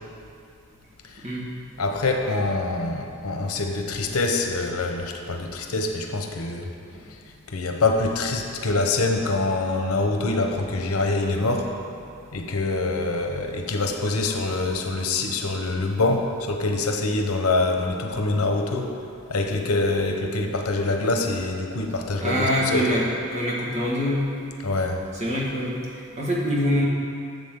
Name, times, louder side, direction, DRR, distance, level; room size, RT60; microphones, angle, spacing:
voice 1, 1.8-6.7 7.5-11.7 12.3-18.9 19.3-22.4 22.7-23.0 24.6-25.0, left 2 dB, 90° left, 3 dB, 1.0 m, -25 dB
voice 2, 22.2-24.3 25.1-26.8, equal, 35° right, -4 dB, 1.7 m, -25 dB
12.0 x 7.4 x 3.8 m, 2.4 s
head